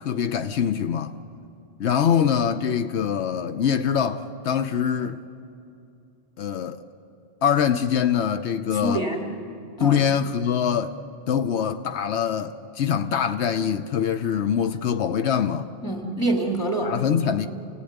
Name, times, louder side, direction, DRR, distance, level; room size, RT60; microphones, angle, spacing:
voice 1, 0.0-1.1 1.8-5.2 6.4-6.8 7.4-9.1 9.8-11.0 11.3-15.7 16.8-17.5, left 8 dB, 90° left, 1.1 m, -24 dB
voice 2, 8.7-9.2 9.8-10.0 15.8-16.9 17.3-17.5, right 2 dB, 20° left, 3.4 m, -26 dB
28.5 x 17.0 x 9.4 m
omnidirectional pair, 1.1 m